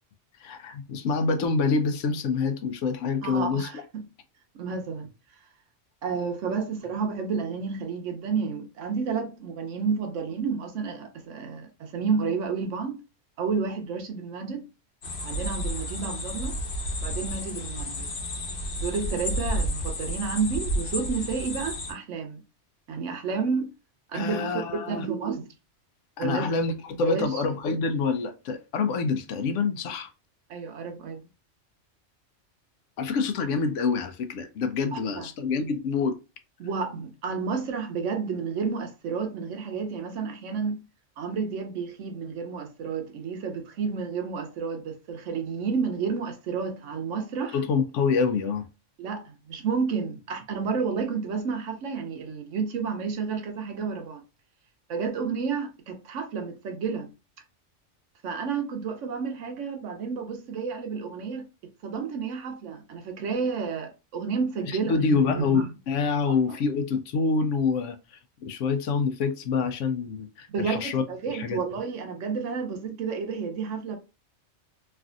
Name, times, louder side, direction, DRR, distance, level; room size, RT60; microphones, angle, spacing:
voice 1, 0.4-3.8 24.1-25.1 26.2-30.1 33.0-36.2 47.5-48.7 64.7-71.6, left 4 dB, 85° left, 0.9 m, -26 dB
voice 2, 3.2-4.0 4.5-5.1 6.0-13.0 13.4-14.7 15.2-16.6 17.0-18.1 18.8-22.4 22.9-23.7 24.1-25.5 26.2-26.5 27.0-27.4 30.5-31.2 34.9-35.3 36.6-40.8 41.2-47.6 49.0-54.2 54.9-57.1 58.2-64.9 65.3-65.7 66.3-66.4 70.5-74.0, right 5 dB, 90° right, 1.1 m, -31 dB
sound 1, 15.0-21.9, equal, 65° left, 1.0 m, -31 dB
3.3 x 2.5 x 2.5 m
omnidirectional pair, 1.2 m